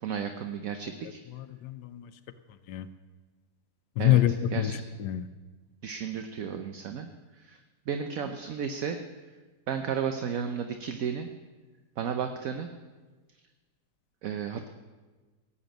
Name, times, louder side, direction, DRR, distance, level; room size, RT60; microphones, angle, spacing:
voice 1, 0.0-1.2 4.0-4.2 4.5-4.8 5.8-7.1 7.4-7.6 7.9-9.0 9.7-11.3 12.0-12.7 14.2-14.7, right 7 dB, 60° right, 6 dB, 1.2 m, -33 dB
voice 2, 1.3-2.1 2.7-2.9 4.0-5.3, left 12 dB, 90° left, 9 dB, 1.3 m, -26 dB
18.0 x 7.1 x 9.0 m, 1.3 s
omnidirectional pair, 1.8 m